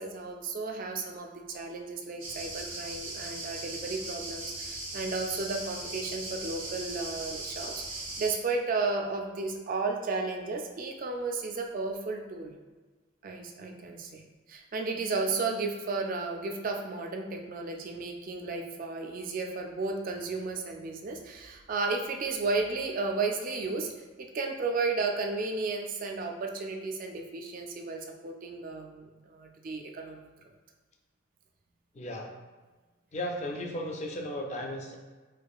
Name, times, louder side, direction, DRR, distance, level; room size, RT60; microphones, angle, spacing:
voice 1, 0.0-12.5 13.2-14.2 14.5-23.9 24.3-30.5, right 3 dB, 40° right, 3 dB, 0.3 m, -33 dB
sound 1, 2.2-8.3, right 2 dB, 90° right, 0.9 m, -39 dB
voice 2, 32.0-32.3 33.1-35.0, equal, 35° left, 2 dB, 0.4 m, -35 dB
4.6 x 2.4 x 2.3 m, 1.3 s
head